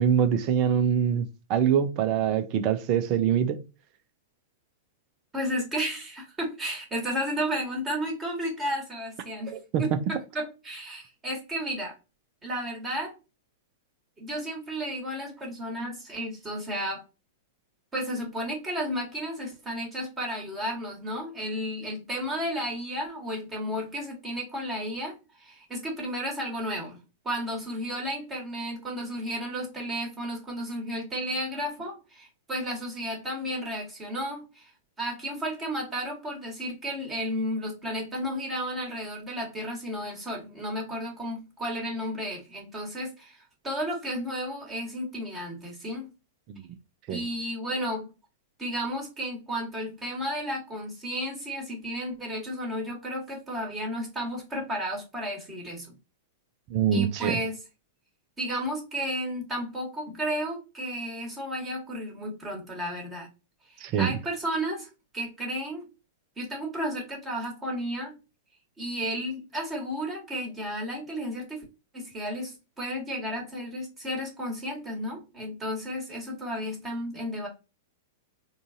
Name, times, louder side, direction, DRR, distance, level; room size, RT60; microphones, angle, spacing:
voice 1, 0.0-3.6 9.5-9.8 46.5-46.6 47.1-47.2 56.7-57.4 63.8-64.2, right 8 dB, 40° right, 0.5 m, -24 dB
voice 2, 5.3-11.9 12.4-13.1 14.2-17.0 17.9-34.7 35.0-46.1 47.1-48.1 48.6-55.9 56.9-57.6 58.4-63.3 63.7-64.9 65.1-65.9 66.4-68.1 68.8-71.6 71.9-77.5, equal, 15° right, 1.6 m, -33 dB
3.8 x 2.4 x 2.6 m
figure-of-eight pair, 100°, 0 cm